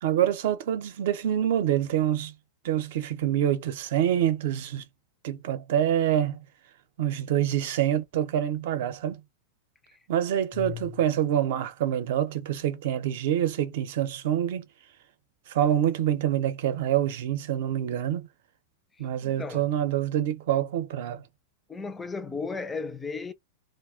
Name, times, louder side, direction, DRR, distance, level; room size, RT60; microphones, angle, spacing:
voice 1, 0.0-2.3 2.6-4.8 5.2-6.4 7.0-9.2 10.1-14.7 15.5-18.3 19.0-21.2, right 11 dB, 60° right, 0.6 m, -26 dB
voice 2, 10.5-11.0 19.0-19.7 21.7-23.3, left 5 dB, 10° left, 0.4 m, -35 dB
2.4 x 2.1 x 3.5 m
supercardioid pair, 160°, 0 cm